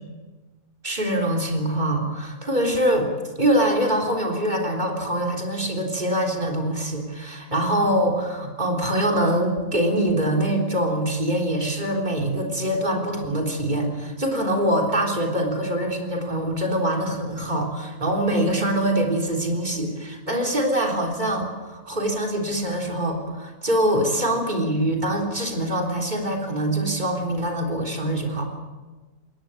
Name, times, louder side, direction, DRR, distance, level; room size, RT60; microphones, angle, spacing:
voice 1, 0.8-3.1 3.4-28.5, right 1 dB, 35° right, 1 dB, 3.8 m, -24 dB
20.5 x 18.0 x 8.9 m, 1.3 s
omnidirectional pair, 1.3 m